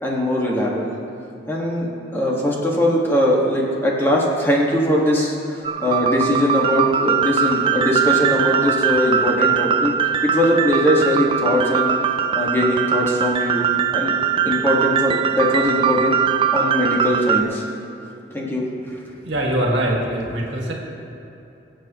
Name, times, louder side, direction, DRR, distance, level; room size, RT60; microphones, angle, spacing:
voice 1, 0.0-0.9 1.5-9.9 10.3-11.9 12.3-13.6 13.9-14.1 14.4-16.2 16.5-17.6 18.3-19.0, left 1 dB, 10° left, -4 dB, 1.6 m, -20 dB
sound 1, 5.6-17.4, right 7 dB, 30° right, 0.3 m, -21 dB
voice 2, 19.2-20.7, right 1 dB, 75° right, -2 dB, 2.0 m, -22 dB
22.5 x 7.8 x 3.0 m, 2.8 s
head